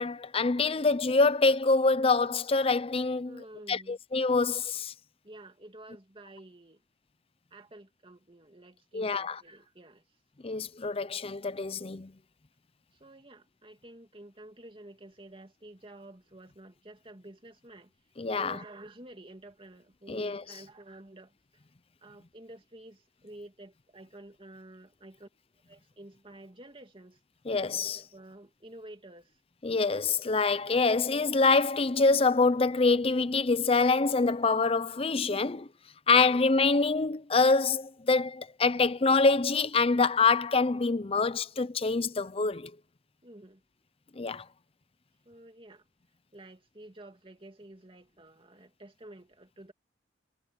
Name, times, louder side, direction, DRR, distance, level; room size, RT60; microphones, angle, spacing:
voice 1, 0.0-4.9 8.9-9.4 10.4-12.1 18.2-18.6 20.1-20.4 27.5-28.0 29.6-35.7 36.1-42.7 44.2-44.5, left 4 dB, 30° left, 0.6 m, -25 dB
voice 2, 3.2-4.0 5.2-6.8 7.5-10.0 12.9-17.9 18.3-21.3 22.0-25.3 25.7-27.2 27.8-29.4 36.1-36.5 43.2-43.6 45.2-45.9 46.3-49.7, right 1 dB, 30° right, 2.8 m, -50 dB
head